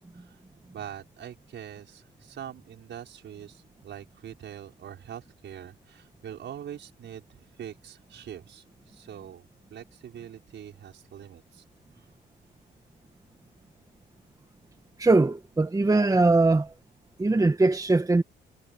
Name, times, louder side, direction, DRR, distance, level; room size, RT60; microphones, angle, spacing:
voice 1, 0.7-11.6, right 9 dB, 65° right, 5.4 m, -43 dB
voice 2, 15.0-16.7 17.2-18.2, right 3 dB, 15° right, 1.5 m, -21 dB
cardioid pair, 90°, 20 cm